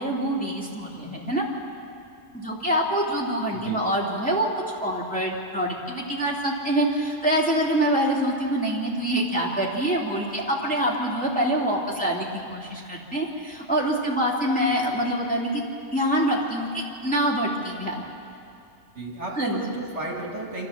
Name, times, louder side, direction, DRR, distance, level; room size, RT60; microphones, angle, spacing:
voice 1, 0.0-1.4 2.3-4.5 4.8-18.0 19.4-19.6, right 1 dB, 5° left, -4 dB, 2.6 m, -25 dB
voice 2, 3.5-3.8 18.9-20.7, right 2 dB, 50° right, -2 dB, 2.4 m, -33 dB
26.5 x 14.0 x 7.2 m, 2.6 s
omnidirectional pair, 1.6 m